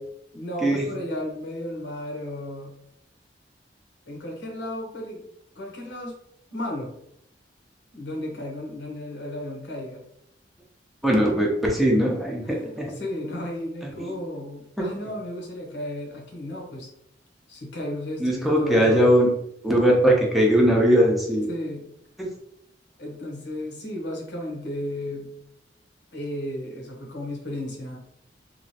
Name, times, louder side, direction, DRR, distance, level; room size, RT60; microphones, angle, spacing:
voice 1, 0.3-2.7 4.1-5.2 5.5-6.2 6.5-6.9 7.9-10.0 12.4-16.9 17.5-19.1 21.5-21.9 23.0-25.3 26.1-28.0, left 1 dB, 85° left, 0 dB, 0.9 m, -34 dB
voice 2, 11.0-12.9 13.8-14.1 14.8-14.9 18.2-19.3 19.6-21.5 22.2-22.3, equal, ahead, -2 dB, 0.5 m, -20 dB
3.0 x 2.4 x 2.7 m, 0.75 s
head